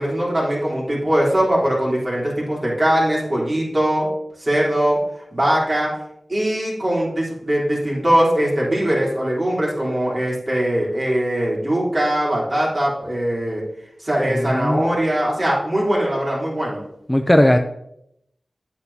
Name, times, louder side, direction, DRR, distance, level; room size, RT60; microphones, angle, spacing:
voice 1, 0.0-4.1 4.4-5.0 5.3-5.9 6.3-13.6 14.0-16.8, right 1 dB, 35° right, -5 dB, 3.5 m, -21 dB
voice 2, 14.3-15.0 17.1-17.6, left 1 dB, 15° left, 6 dB, 0.5 m, -17 dB
9.0 x 8.5 x 2.8 m, 0.77 s
wide cardioid pair, 60°, 0 cm